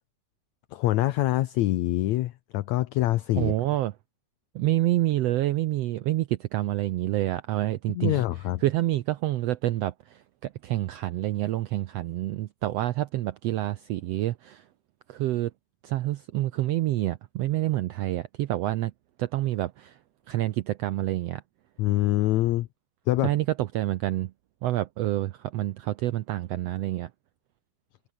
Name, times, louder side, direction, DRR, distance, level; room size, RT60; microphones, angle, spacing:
voice 1, 0.7-3.5 7.9-8.6 21.8-22.7 23.1-23.3, left 16 dB, 75° left, 1.9 m, -25 dB
voice 2, 3.4-3.9 4.5-8.2 8.6-14.6 15.1-15.5 15.8-18.9 19.2-20.0 20.3-21.4 23.2-24.3 24.6-27.1, right 15 dB, 80° right, 1.5 m, -27 dB
omnidirectional pair, 3.6 m